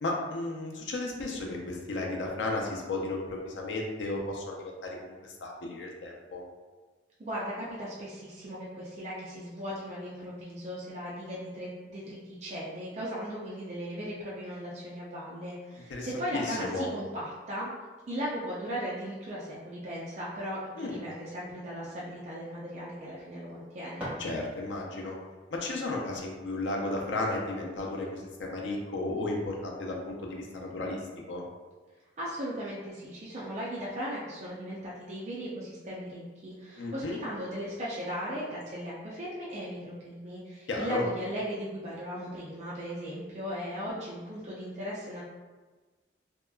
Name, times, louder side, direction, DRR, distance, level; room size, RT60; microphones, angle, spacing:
voice 1, 0.0-6.4 15.9-16.1 16.3-16.9 20.8-21.0 24.2-25.2 25.5-31.0 31.3-31.4 36.8-37.2 40.7-41.0, left 2 dB, 85° left, -1 dB, 0.5 m, -34 dB
voice 2, 7.2-17.7 18.1-24.1 32.2-45.2, equal, 40° right, -7 dB, 0.4 m, -37 dB
sound 1, 23.9-25.0, equal, 10° right, 1.1 m, -42 dB
2.8 x 2.3 x 2.2 m, 1.3 s
head